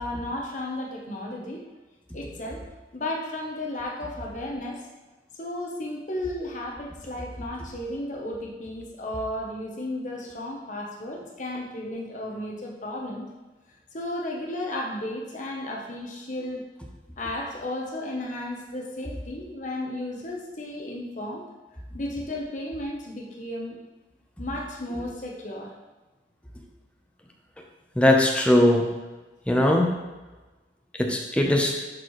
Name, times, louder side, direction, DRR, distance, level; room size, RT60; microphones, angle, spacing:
voice 1, 0.0-1.6 2.1-2.6 2.9-4.8 5.4-13.3 13.9-16.6 17.2-21.5 21.9-23.8 24.4-25.7, left 1 dB, 45° left, -1 dB, 0.9 m, -34 dB
voice 2, 28.0-28.9 29.5-30.0 31.0-31.7, left 1 dB, 5° left, 0 dB, 0.8 m, -20 dB
11.0 x 4.6 x 3.1 m, 1.2 s
head